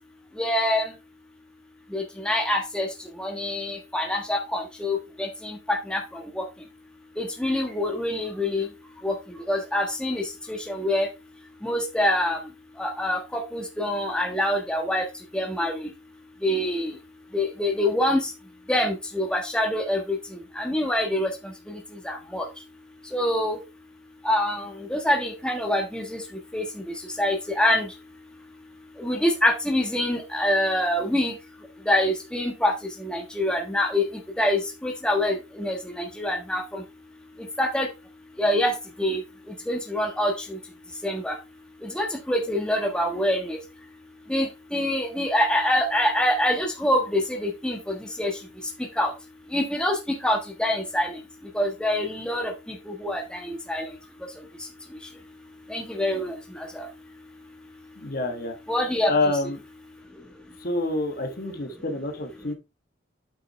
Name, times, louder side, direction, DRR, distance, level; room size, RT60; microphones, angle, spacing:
voice 1, 0.4-0.9 1.9-2.9 3.2-6.4 7.2-8.7 9.0-9.2 9.5-10.2 10.5-11.1 11.6-12.4 12.8-15.1 15.3-15.9 16.4-16.9 17.3-18.3 18.7-20.2 20.5-21.3 21.7-21.8 22.0-22.5 23.1-23.6 24.2-26.2 26.5-26.6 27.2-27.9 29.0-31.3 31.9-32.7 33.0-34.0 34.4-36.8 37.6-37.9 38.4-38.7 39.0-39.2 39.7-40.6 41.0-41.4 41.8-43.6 44.3-48.3 49.0-49.1 49.5-51.1 51.5-52.5 52.9-53.9 55.7-56.9 58.7-59.1, left 1 dB, 5° left, 2 dB, 1.3 m, -25 dB
voice 2, 58.0-58.5 59.1-59.6 60.6-62.5, left 2 dB, 50° left, 5 dB, 1.3 m, -27 dB
8.6 x 5.7 x 3.3 m, 0.26 s
head